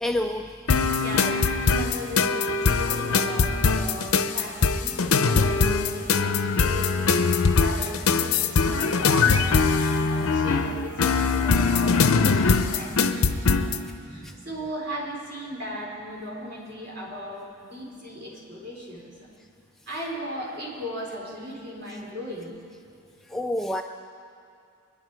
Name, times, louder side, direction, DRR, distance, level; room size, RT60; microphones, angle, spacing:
voice 1, 0.0-1.0 11.7-11.8 12.2-12.6 14.2-14.3 23.3-23.8, left 1 dB, ahead, 3 dB, 0.3 m, -30 dB
sound 1, 0.7-13.8, left 4 dB, 65° left, 0.7 m, -22 dB
voice 2, 1.0-7.1 7.6-13.8 14.1-19.3 19.9-22.5, equal, 50° right, -4 dB, 4.0 m, -37 dB
23.5 x 10.5 x 4.7 m, 2.4 s
head